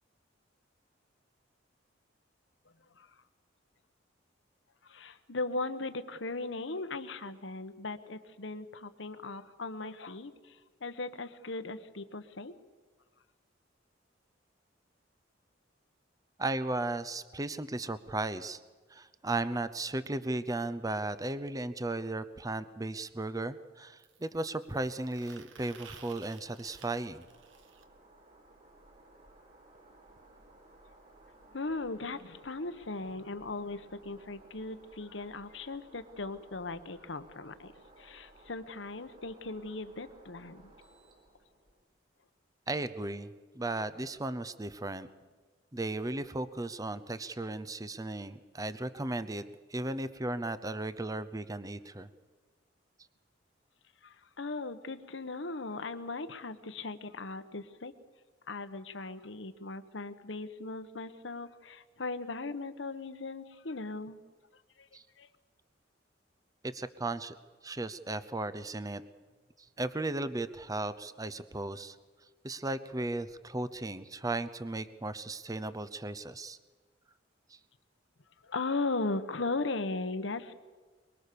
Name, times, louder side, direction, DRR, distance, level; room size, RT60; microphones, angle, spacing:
voice 1, 4.8-12.5 31.5-37.7 38.0-40.6 54.0-57.9 58.5-64.2 65.2-65.3 78.4-80.5, left 3 dB, 70° left, 11 dB, 1.2 m, -38 dB
voice 2, 16.4-18.6 18.9-27.3 42.7-45.1 45.7-49.4 49.7-52.1 64.9-65.0 66.6-67.3 67.6-69.0 69.8-72.0 72.4-76.6, right 2 dB, 20° right, 14 dB, 0.7 m, -35 dB
sound 1, 24.0-27.8 29.7-29.8 30.1-30.2 30.5-30.6 31.6-31.7, right 6 dB, 80° right, 1.4 m, -55 dB
sound 2, 26.3-41.8, right 2 dB, 45° right, 4.3 m, -59 dB
23.0 x 23.0 x 6.9 m, 1.4 s
head